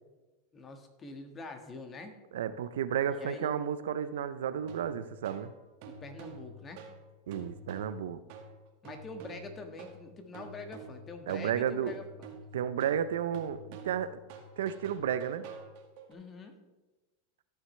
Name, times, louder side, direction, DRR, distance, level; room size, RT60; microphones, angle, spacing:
voice 1, 0.5-2.2 3.1-3.6 5.8-6.8 8.8-12.0 16.1-16.5, left 3 dB, 25° left, 5 dB, 1.6 m, -44 dB
voice 2, 2.3-5.5 7.3-8.2 11.3-11.9 12.5-13.6 13.8-14.2 14.6-15.4, right 9 dB, 80° right, 13 dB, 0.5 m, -32 dB
sound 1, 4.6-16.1, right 3 dB, 60° right, 1.8 m, -48 dB
15.0 x 6.5 x 3.2 m, 1.1 s
hypercardioid pair, 110°, 0 cm